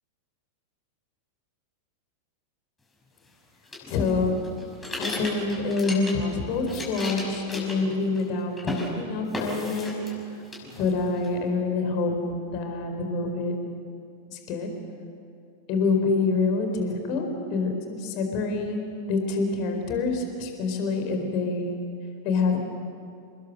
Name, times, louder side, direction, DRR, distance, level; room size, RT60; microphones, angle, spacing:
sound 1, 3.7-6.3 6.6-8.3 8.6-8.9 9.3-10.2 10.5-11.3, left 2 dB, 15° left, 6.0 m, -34 dB
voice 1, 3.9-4.3 5.0-10.0 10.8-12.1 12.5-13.5 14.3-14.7 15.7-18.8 19.1-21.8 22.2-22.6, left 3 dB, 45° left, 4 dB, 4.3 m, -26 dB
28.0 x 20.5 x 6.6 m, 2.4 s
figure-of-eight pair, 90°, 0 cm